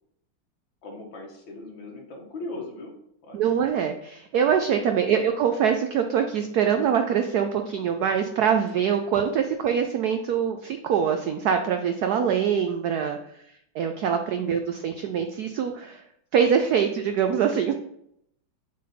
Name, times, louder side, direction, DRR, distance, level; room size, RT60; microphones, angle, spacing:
voice 1, 0.8-3.5 5.0-5.3 8.7-8.8, left 2 dB, 70° left, 0 dB, 2.1 m, -39 dB
voice 2, 3.3-13.2 13.7-16.0 16.3-17.7, right 7 dB, 80° right, 6 dB, 0.8 m, -24 dB
7.4 x 4.2 x 4.2 m, 0.74 s
omnidirectional pair, 2.2 m